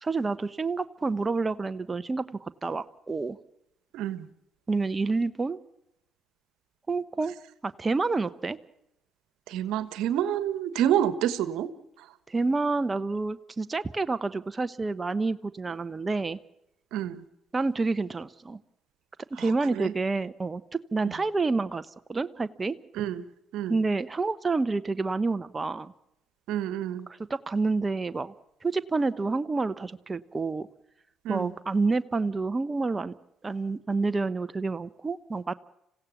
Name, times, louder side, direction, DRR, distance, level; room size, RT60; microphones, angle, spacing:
voice 1, 0.0-3.4 4.7-5.6 6.9-7.3 7.6-8.6 12.3-16.4 17.5-18.6 19.4-22.7 23.7-25.9 27.3-28.3 28.6-30.7 31.3-33.1 33.4-35.5, right 3 dB, 30° right, 12 dB, 0.9 m, -28 dB
voice 2, 3.9-4.3 9.5-11.7 12.0-12.1 16.9-17.2 19.3-19.9 21.0-21.1 22.9-23.2 23.5-23.8 26.5-27.1 31.2-31.5, right 10 dB, 75° right, 14 dB, 1.3 m, -28 dB
26.5 x 16.5 x 7.2 m, 0.85 s
supercardioid pair, 60°, 0 cm